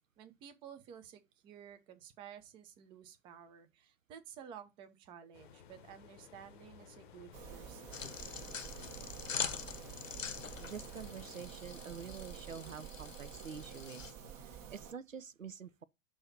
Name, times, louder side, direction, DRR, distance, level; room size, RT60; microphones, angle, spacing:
voice 1, 0.2-8.0, right 8 dB, 15° right, 0.5 m, -53 dB
sound 1, 5.3-11.4, left 7 dB, 40° left, 0.8 m, -55 dB
sound 2, 7.3-14.9, right 8 dB, 35° right, 1.4 m, -50 dB
sound 3, 7.9-14.1, left 6 dB, 85° left, 0.8 m, -44 dB
voice 2, 10.6-14.1 14.4-15.8, right 7 dB, 85° right, 0.7 m, -47 dB
6.3 x 2.9 x 5.5 m
figure-of-eight pair, 115°, 38 cm